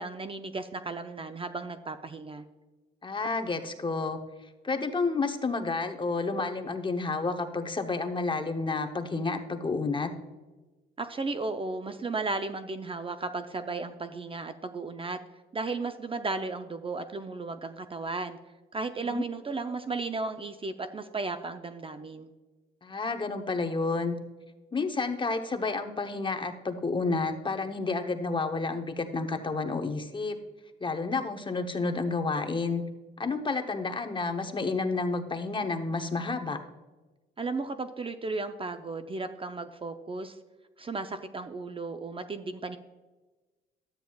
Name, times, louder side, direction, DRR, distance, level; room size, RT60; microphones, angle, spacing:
voice 1, 0.0-2.4 11.0-15.2 15.5-18.4 18.7-22.3 37.4-40.4 40.8-42.8, right 3 dB, 25° right, 8 dB, 0.6 m, -35 dB
voice 2, 3.0-4.2 4.6-10.1 19.0-19.2 22.8-24.1 24.7-30.4 30.8-32.8 33.2-36.6, left 3 dB, 25° left, 6 dB, 0.9 m, -30 dB
12.5 x 8.9 x 2.3 m, 1.2 s
cardioid pair, 90°, 20 cm